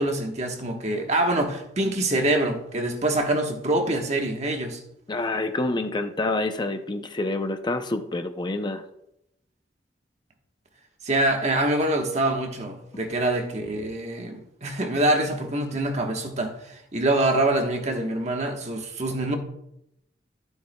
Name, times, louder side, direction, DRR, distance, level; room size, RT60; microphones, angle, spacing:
voice 1, 0.0-4.8 11.0-19.4, right 1 dB, 40° right, 1.2 m, -25 dB
voice 2, 5.1-8.8, left 2 dB, 25° left, 0.5 m, -27 dB
12.5 x 7.9 x 2.2 m
head